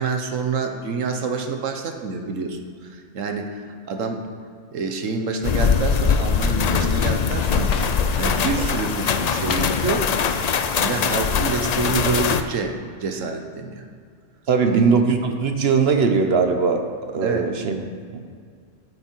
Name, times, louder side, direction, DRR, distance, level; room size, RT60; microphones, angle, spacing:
voice 1, 0.0-4.2 4.7-7.7 8.1-10.1 10.7-13.8 14.7-14.8 17.2-17.5, right 4 dB, 80° right, 4 dB, 1.3 m, -27 dB
sound 1, 5.4-12.4, left 6 dB, 85° left, 0.3 m, -22 dB
Livestock farm animals working animals, 7.0-11.9, left 4 dB, 65° left, 1.2 m, -36 dB
voice 2, 14.5-16.8 17.1-18.2, right 5 dB, 55° right, 5 dB, 1.0 m, -20 dB
13.0 x 6.7 x 4.5 m, 2.1 s
omnidirectional pair, 1.3 m